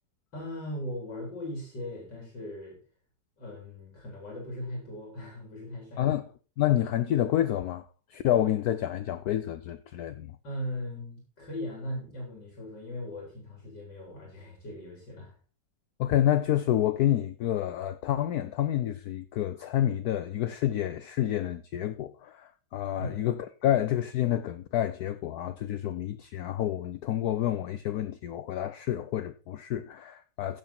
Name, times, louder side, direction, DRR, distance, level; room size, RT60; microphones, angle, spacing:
voice 1, 0.3-2.8 3.4-6.1 6.6-6.8 10.4-15.3 23.0-23.3, left 1 dB, 85° left, 4.3 m, -39 dB
voice 2, 6.6-10.3 16.0-30.6, left 12 dB, 70° left, 1.1 m, -28 dB
15.5 x 6.3 x 4.4 m
omnidirectional pair, 1.9 m